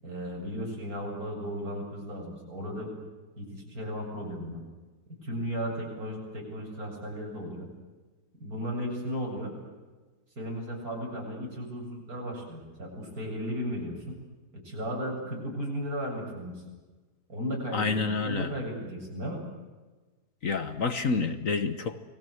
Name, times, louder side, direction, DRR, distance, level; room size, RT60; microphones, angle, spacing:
voice 1, 0.0-2.9 3.4-4.6 5.2-7.7 8.4-9.5 10.4-14.2 14.6-16.6 17.3-19.4, equal, 55° right, 0 dB, 8.1 m, -35 dB
voice 2, 17.7-18.5 20.4-22.0, left 4 dB, 50° left, 10 dB, 1.5 m, -28 dB
30.0 x 21.0 x 8.0 m, 1.3 s
omnidirectional pair, 1.8 m